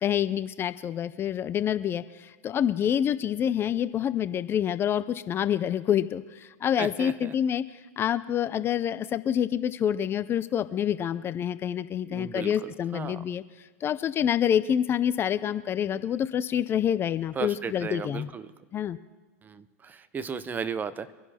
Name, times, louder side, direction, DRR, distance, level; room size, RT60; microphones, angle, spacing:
voice 1, 0.0-18.3 18.7-19.0, left 9 dB, 30° left, 14 dB, 0.4 m, -27 dB
voice 2, 6.8-7.3 12.0-13.2 17.4-18.5 19.4-21.1, right 6 dB, 20° right, 15 dB, 0.6 m, -35 dB
24.5 x 11.0 x 2.8 m, 1.3 s
hypercardioid pair, 110°, 8 cm